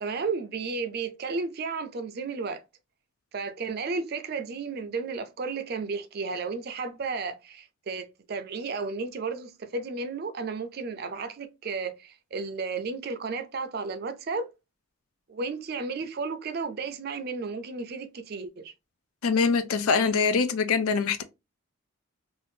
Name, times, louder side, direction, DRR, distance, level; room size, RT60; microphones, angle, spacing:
voice 1, 0.0-2.6 3.3-14.5 15.3-18.7, right 4 dB, 45° right, 0.4 m, -33 dB
voice 2, 19.2-21.2, left 5 dB, 90° left, 0.5 m, -24 dB
2.6 x 2.5 x 3.3 m
head